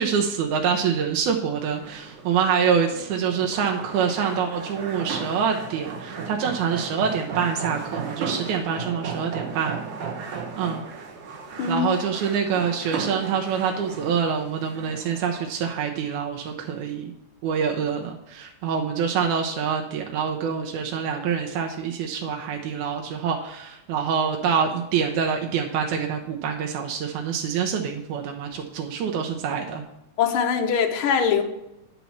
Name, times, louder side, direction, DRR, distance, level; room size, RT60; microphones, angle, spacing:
voice 1, 0.0-9.8 10.6-10.8 11.7-17.1 17.4-29.9, right 7 dB, 85° right, 2 dB, 2.2 m, -26 dB
sound 1, 1.7-15.5, right 5 dB, 60° right, 1.6 m, -35 dB
voice 2, 30.2-31.4, left 7 dB, 85° left, 4 dB, 1.2 m, -22 dB
9.9 x 4.1 x 5.8 m, 0.88 s
omnidirectional pair, 3.4 m